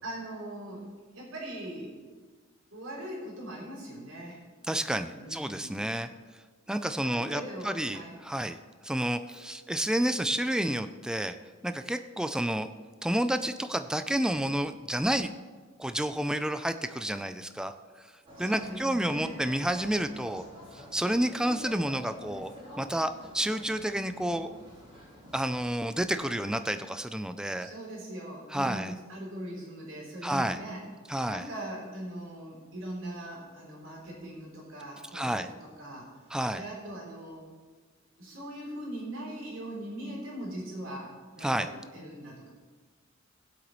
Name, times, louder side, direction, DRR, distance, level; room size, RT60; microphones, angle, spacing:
voice 1, 0.0-0.9 1.1-2.0 2.7-4.4 5.1-5.8 7.0-8.2 18.4-19.4 27.6-30.8 31.2-36.1 36.5-37.5 38.2-42.5, right 1 dB, 85° right, -4 dB, 3.5 m, -41 dB
voice 2, 4.7-6.1 6.7-8.6 8.8-11.4 11.6-12.7 13.0-15.3 15.8-17.7 18.0-18.1 18.4-20.4 20.7-22.5 22.8-24.5 25.3-27.7 28.5-28.9 30.2-30.6 31.1-31.5 35.1-35.5 36.3-36.6 41.4-41.7, right 1 dB, 5° right, 9 dB, 0.4 m, -30 dB
sound 1, 18.2-25.7, left 1 dB, 30° right, 2.8 m, -48 dB
19.5 x 7.9 x 3.1 m, 1.4 s
head